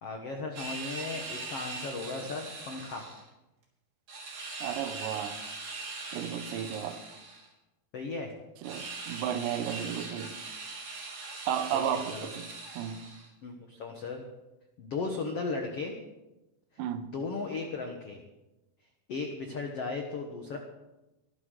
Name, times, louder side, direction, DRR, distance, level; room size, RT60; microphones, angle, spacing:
voice 1, 0.0-3.1 7.9-8.3 11.7-12.3 13.4-14.2 14.8-16.0 16.9-18.2 19.1-20.6, left 4 dB, 85° left, 1.3 m, -36 dB
sound 1, 0.6-3.2 4.1-7.5 8.6-13.3, right 3 dB, 55° right, 4.6 m, -41 dB
voice 2, 4.6-5.4 6.1-7.0 8.6-10.4 11.5-12.5 12.8-13.0 16.8-17.1, right 9 dB, 90° right, 3.3 m, -33 dB
22.5 x 13.0 x 3.9 m
omnidirectional pair, 4.9 m